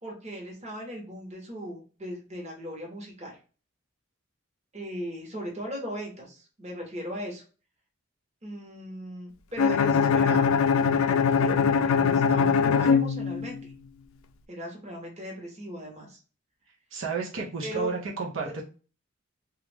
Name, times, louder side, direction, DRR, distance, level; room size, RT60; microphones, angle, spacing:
voice 1, 0.0-3.4 4.7-7.4 8.4-10.6 11.4-13.7 14.5-16.2 17.6-17.9, equal, 35° right, -1 dB, 1.0 m, -38 dB
Bowed string instrument, 9.6-13.7, left 6 dB, 80° left, 0.4 m, -22 dB
voice 2, 16.9-18.6, right 5 dB, 75° right, -2 dB, 0.7 m, -32 dB
3.0 x 2.4 x 3.3 m, 0.36 s
head